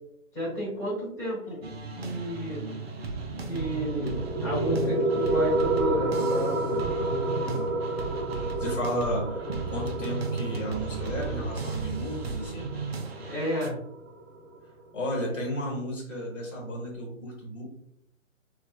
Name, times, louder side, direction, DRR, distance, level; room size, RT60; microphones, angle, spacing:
voice 1, 0.3-1.6 1.9-2.7 3.5-6.8 13.2-13.8, equal, 10° left, -10 dB, 1.2 m, -31 dB
sound 1, 1.6-13.7, right 4 dB, 50° right, 0.5 m, -36 dB
sound 2, 3.5-14.6, right 2 dB, 20° right, 0.9 m, -30 dB
voice 2, 8.6-12.7 14.9-17.6, equal, 60° left, -2 dB, 1.3 m, -33 dB
3.2 x 2.3 x 2.3 m, 0.73 s
figure-of-eight pair, 135°, 41 cm